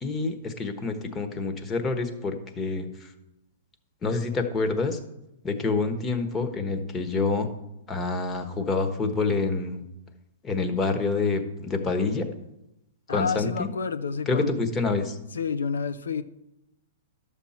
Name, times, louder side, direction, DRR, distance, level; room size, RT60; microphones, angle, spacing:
voice 1, 0.0-3.1 4.0-5.0 5.4-7.5 7.9-9.8 10.4-12.3 13.1-13.7 14.3-15.2, left 3 dB, 20° left, 1.3 m, -27 dB
voice 2, 13.1-14.6 15.3-16.2, left 5 dB, 85° left, 0.7 m, -29 dB
12.0 x 7.1 x 4.4 m
hypercardioid pair, 120°, 0 cm